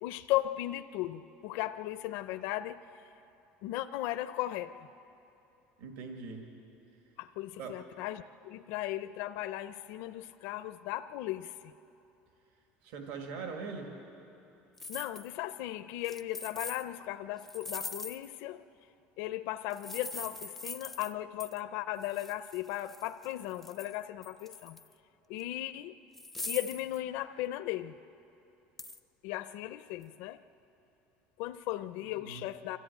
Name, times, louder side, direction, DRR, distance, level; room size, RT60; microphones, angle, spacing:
voice 1, 0.0-2.8 3.6-4.7 7.2-11.6 14.9-18.6 19.2-24.8 25.3-25.9 26.5-27.9 29.2-30.4 31.4-32.8, left 14 dB, 60° left, 10 dB, 0.4 m, -36 dB
voice 2, 5.8-6.5 7.6-7.7 12.8-13.9 32.1-32.5, right 5 dB, 65° right, 3 dB, 1.8 m, -41 dB
sound 1, 14.8-15.3 16.0-16.8 17.4-18.4 19.7-21.1 21.4-21.6 22.0-24.0 24.2-24.9 25.4-25.5 26.1-27.0 28.8-29.0, left 3 dB, 5° left, 0.4 m, -42 dB
25.5 x 14.0 x 9.0 m, 2.9 s
cardioid pair, 180°, 4 cm